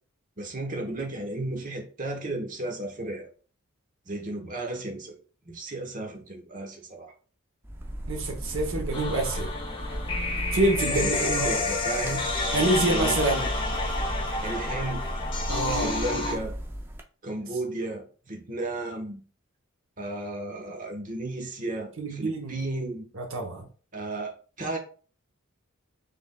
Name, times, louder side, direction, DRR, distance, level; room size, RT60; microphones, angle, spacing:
voice 1, 0.4-3.3 4.1-5.2 5.5-7.1 10.9-12.3 12.9-13.2 14.4-15.0 15.7-16.5 17.2-19.2 20.0-23.1 23.9-24.3 24.6-24.8, right 2 dB, 40° right, 1.0 m, -34 dB
sound 1, 7.6-17.0, equal, 10° right, 0.4 m, -34 dB
voice 2, 8.1-9.5 10.5-11.6 12.5-13.5 15.5-16.0 22.0-22.6 23.1-23.7, right 2 dB, 60° right, 0.9 m, -27 dB
sound 2, 8.9-16.3, left 3 dB, 25° left, 1.0 m, -30 dB
5.4 x 3.5 x 2.3 m
head